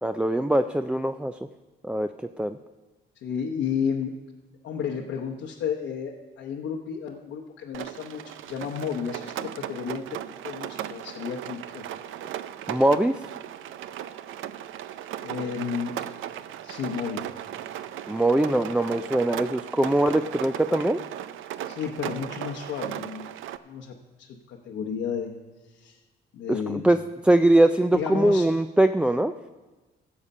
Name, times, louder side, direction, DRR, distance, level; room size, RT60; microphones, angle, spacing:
voice 1, 0.0-1.3 1.8-2.6 12.7-13.3 18.1-21.0 26.5-27.0 27.2-29.3, right 1 dB, 5° right, 9 dB, 0.3 m, -22 dB
voice 2, 3.2-4.1 4.6-10.2 10.4-11.9 15.2-15.9 16.6-17.2 21.7-23.3 23.6-25.3 25.7-26.0 26.3-26.9 27.9-28.5, left 7 dB, 85° left, -1 dB, 1.0 m, -32 dB
Rain, 7.7-23.6, right 11 dB, 80° right, 0.5 m, -37 dB
16.0 x 7.1 x 5.4 m, 1.2 s
cardioid pair, 90°, 20 cm